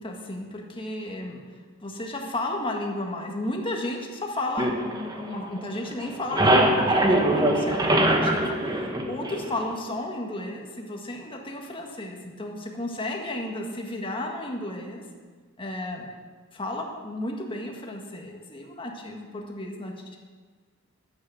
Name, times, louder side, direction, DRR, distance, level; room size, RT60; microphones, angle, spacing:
voice 1, 0.0-1.4 1.8-15.0 15.6-16.1 16.5-20.2, left 1 dB, 25° left, 1 dB, 1.6 m, -33 dB
sound 1, 4.6-5.7 6.0-9.7, right 1 dB, 20° right, 1.1 m, -23 dB
10.5 x 8.8 x 7.0 m, 1.5 s
head